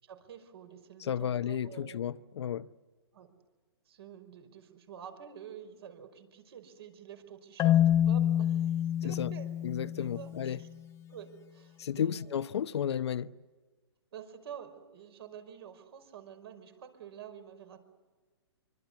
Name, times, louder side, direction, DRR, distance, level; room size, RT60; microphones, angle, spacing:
voice 1, 0.0-2.0 3.1-3.3 3.9-10.7 11.1-12.2 14.1-17.8, right 8 dB, 60° right, 5.5 m, -49 dB
voice 2, 1.0-2.7 9.0-9.3 9.6-10.6 11.8-13.3, left 9 dB, 70° left, 0.9 m, -33 dB
Marimba xylophone, 7.6-10.6, left 11 dB, 20° left, 1.0 m, -27 dB
26.0 x 24.5 x 8.4 m
hypercardioid pair, 145°, 15 cm